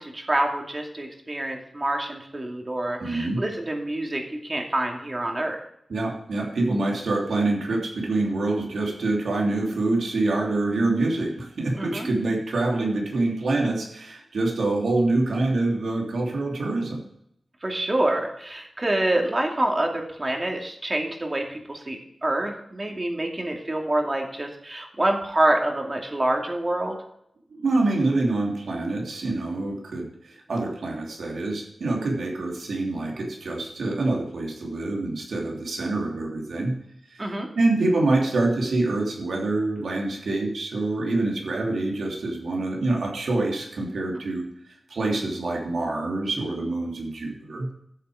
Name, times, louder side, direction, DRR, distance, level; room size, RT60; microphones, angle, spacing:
voice 1, 0.0-5.6 11.8-12.1 17.6-27.0 37.2-37.5, right 1 dB, 30° right, 1 dB, 2.5 m, -27 dB
voice 2, 3.0-3.4 5.9-17.0 27.5-36.8 37.1-37.2 37.5-44.4 44.9-47.7, right 2 dB, 85° right, 0 dB, 3.1 m, -26 dB
12.5 x 7.4 x 5.0 m, 0.74 s
wide cardioid pair, 65°, 0 cm